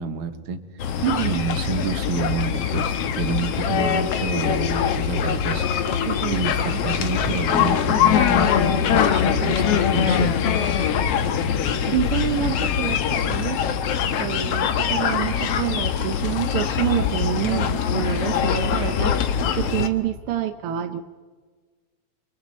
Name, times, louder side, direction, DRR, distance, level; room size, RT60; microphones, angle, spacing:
voice 1, 0.0-1.0 1.2-6.0 6.3-10.7, right 5 dB, 55° right, 7 dB, 1.8 m, -29 dB
sound 1, 0.8-19.9, left 8 dB, 65° left, 1.8 m, -22 dB
voice 2, 1.0-1.4 6.1-6.9 10.2-10.3 11.6-13.6 14.2-21.0, right 12 dB, 75° right, 8 dB, 1.3 m, -27 dB
30.0 x 23.5 x 4.2 m, 1.5 s
omnidirectional pair, 3.3 m